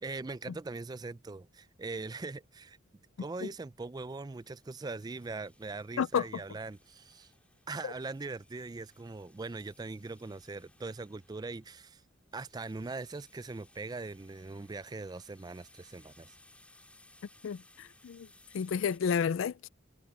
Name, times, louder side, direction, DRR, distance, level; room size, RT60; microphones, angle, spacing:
voice 1, 0.0-2.8 3.2-7.3 7.7-12.0 12.3-16.4, right 3 dB, 20° right, 0.4 m, -41 dB
sound 1, 4.2-19.0, left 2 dB, 5° left, 4.5 m, -63 dB
voice 2, 6.0-6.3 17.4-18.3 18.5-19.7, left 7 dB, 65° left, 0.3 m, -31 dB
head